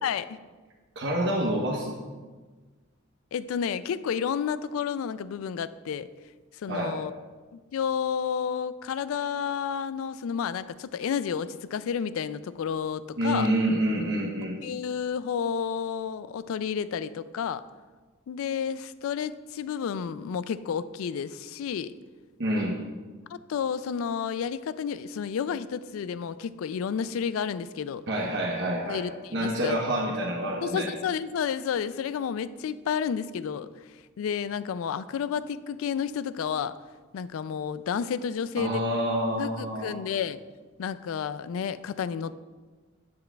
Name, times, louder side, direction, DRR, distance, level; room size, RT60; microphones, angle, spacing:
voice 1, 0.0-0.4 3.3-6.1 6.5-7.1 7.5-13.5 14.6-17.6 18.3-22.0 23.3-28.1 28.8-29.8 30.6-33.7 34.2-36.7 37.1-38.8 39.4-40.4 40.8-42.3, left 7 dB, 75° left, 15 dB, 0.3 m, -31 dB
voice 2, 1.0-2.0 6.7-7.0 13.2-14.6 22.4-22.8 28.1-30.9 38.6-40.0, right 1 dB, 60° right, -2 dB, 1.0 m, -27 dB
10.5 x 7.1 x 2.3 m, 1.3 s
head